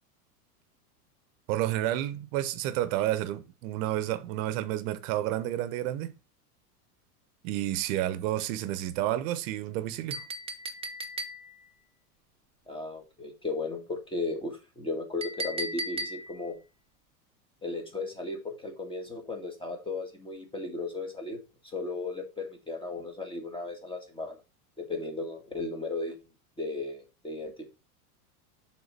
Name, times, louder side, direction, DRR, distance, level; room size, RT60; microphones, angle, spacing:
voice 1, 1.5-6.1 7.4-10.2, right 13 dB, 55° right, 0.9 m, -30 dB
Chink clink, 10.1-11.7 15.2-16.5, right 1 dB, 15° right, 0.6 m, -36 dB
voice 2, 12.7-16.6 17.6-21.4 21.6-24.4 24.8-26.2 26.6-27.5, left 3 dB, 10° left, 2.2 m, -35 dB
6.3 x 3.9 x 5.7 m
hypercardioid pair, 110°, 46 cm